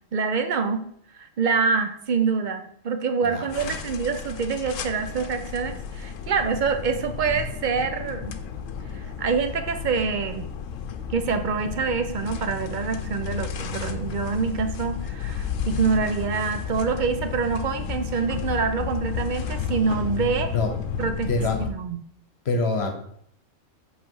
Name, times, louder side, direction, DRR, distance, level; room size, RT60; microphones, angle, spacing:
voice 1, 0.1-0.8 1.1-8.4 9.2-10.4 11.1-20.5 21.0-21.3 21.6-22.0, right 5 dB, 55° right, 8 dB, 0.5 m, -26 dB
voice 2, 3.2-3.8 20.5-20.7 21.3-21.6 22.4-22.9, left 3 dB, 55° left, 5 dB, 1.2 m, -25 dB
sound 1, 3.5-21.7, left 7 dB, 85° left, 1.0 m, -32 dB
7.4 x 3.3 x 4.6 m, 0.67 s
omnidirectional pair, 1.3 m